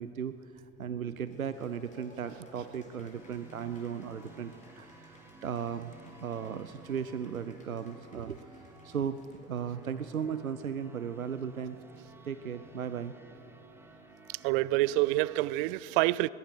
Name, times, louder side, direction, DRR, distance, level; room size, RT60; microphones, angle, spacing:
voice 1, 0.0-5.9 6.2-9.2 9.5-11.8 12.2-13.1, right 7 dB, 80° right, 12 dB, 0.8 m, -36 dB
Cheering / Applause, 1.2-10.8, left 2 dB, 20° left, 5.0 m, -60 dB
sound 1, 3.1-15.4, right 3 dB, 5° right, 2.0 m, -55 dB
voice 2, 14.3-16.3, right 18 dB, 40° right, 22 dB, 0.5 m, -27 dB
22.0 x 20.5 x 6.8 m, 2.6 s
figure-of-eight pair, 80°, 41 cm